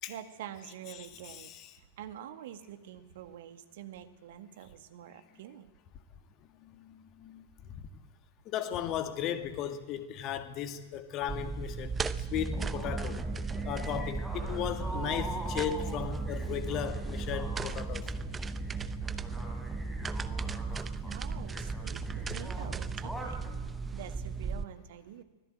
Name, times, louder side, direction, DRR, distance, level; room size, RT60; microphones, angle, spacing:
voice 1, 0.1-5.7 21.1-23.6 23.9-25.2, right 10 dB, 55° right, 1.8 m, -46 dB
voice 2, 1.2-1.7 6.6-7.9 8.5-13.2 13.6-18.1 20.3-20.4 21.0-21.4 22.1-22.2, left 10 dB, 35° left, 2.0 m, -36 dB
sound 1, 11.3-24.6, right 5 dB, 15° right, 0.9 m, -37 dB
sound 2, 12.3-23.5, right 2 dB, ahead, 5.3 m, -39 dB
24.5 x 17.5 x 9.1 m
figure-of-eight pair, 90°, 0 cm